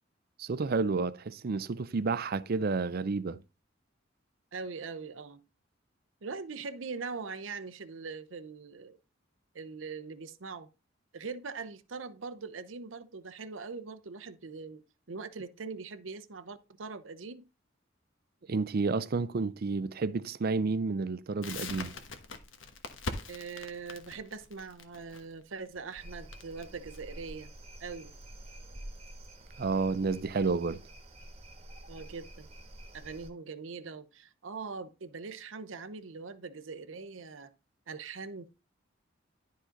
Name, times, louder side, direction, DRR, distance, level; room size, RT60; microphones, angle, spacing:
voice 1, 0.4-3.4 18.5-21.9 29.6-30.8, right 4 dB, 50° right, 0.5 m, -30 dB
voice 2, 4.5-5.4 6.2-9.0 9.5-10.7 11.1-17.4 23.3-27.5 27.8-28.1 31.9-32.5 32.9-37.5 37.9-38.5, right 4 dB, 90° right, 0.8 m, -42 dB
Crackle, 21.4-28.2, left 3 dB, 80° left, 1.2 m, -43 dB
sound 1, 26.0-33.3, right 1 dB, 30° right, 1.3 m, -48 dB
11.5 x 4.9 x 3.8 m
head